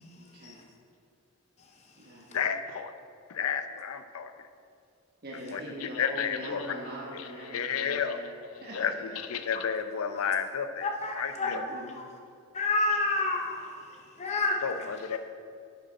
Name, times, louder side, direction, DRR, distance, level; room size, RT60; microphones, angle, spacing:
voice 1, 0.2-0.6 2.0-2.4 5.2-8.3 8.6-8.8 11.4-12.0, equal, 45° right, -5 dB, 1.2 m, -42 dB
voice 2, 2.3-2.9 3.3-4.3 5.5-6.7 7.1-8.4 8.7-11.7 14.6-15.2, left 7 dB, 75° left, 10 dB, 0.5 m, -32 dB
voice 3, 10.8-11.6 12.5-13.6 14.2-14.6, left 2 dB, 30° left, 2 dB, 0.6 m, -28 dB
7.9 x 6.6 x 5.2 m, 2.5 s
head